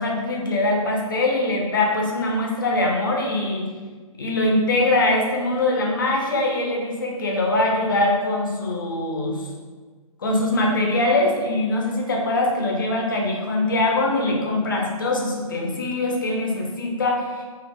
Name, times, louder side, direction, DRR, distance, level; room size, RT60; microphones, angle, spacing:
voice 1, 0.0-3.7 4.2-9.5 10.2-17.4, left 2 dB, 35° left, 0 dB, 0.4 m, -22 dB
2.9 x 2.3 x 3.3 m, 1.4 s
hypercardioid pair, 175°, 18 cm